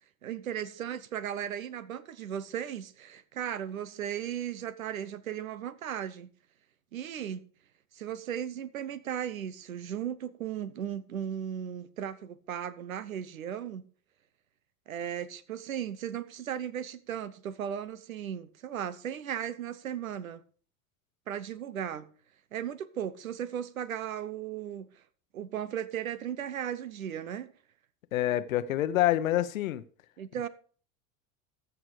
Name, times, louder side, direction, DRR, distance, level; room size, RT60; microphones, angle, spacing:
voice 1, 0.2-6.3 6.9-7.4 7.9-13.8 14.9-20.4 21.3-22.1 22.5-24.9 25.3-27.5 30.2-30.5, right 9 dB, 85° right, 0.9 m, -36 dB
voice 2, 28.1-29.8, left 13 dB, 80° left, 0.9 m, -27 dB
14.5 x 6.1 x 4.8 m
hypercardioid pair, 85°, 40 cm